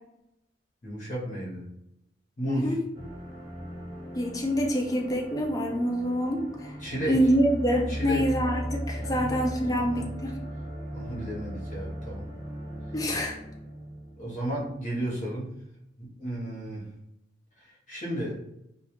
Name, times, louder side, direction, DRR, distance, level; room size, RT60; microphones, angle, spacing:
voice 1, 0.8-1.7 2.4-2.8 6.8-7.2 7.9-8.3 9.0-10.1 10.9-12.2 14.2-15.5 16.0-16.8 17.6-18.4, right 1 dB, 45° left, -4 dB, 0.8 m, -33 dB
voice 2, 2.5-2.8 4.1-6.7 7.1-10.4 12.9-13.3, equal, 20° left, 1 dB, 0.4 m, -26 dB
sound 1, 2.9-14.8, equal, 25° right, 0.7 m, -38 dB
2.2 x 2.1 x 2.9 m, 0.81 s
head